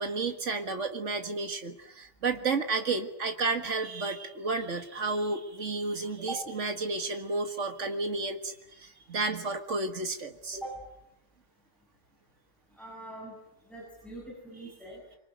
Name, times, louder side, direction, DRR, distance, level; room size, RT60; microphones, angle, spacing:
voice 1, 0.0-10.6, right 3 dB, 90° right, 7 dB, 2.1 m, -32 dB
voice 2, 12.8-13.3 13.7-15.0, right 1 dB, ahead, -4 dB, 7.7 m, -41 dB
25.5 x 24.5 x 9.2 m, 0.85 s
omnidirectional pair, 1.2 m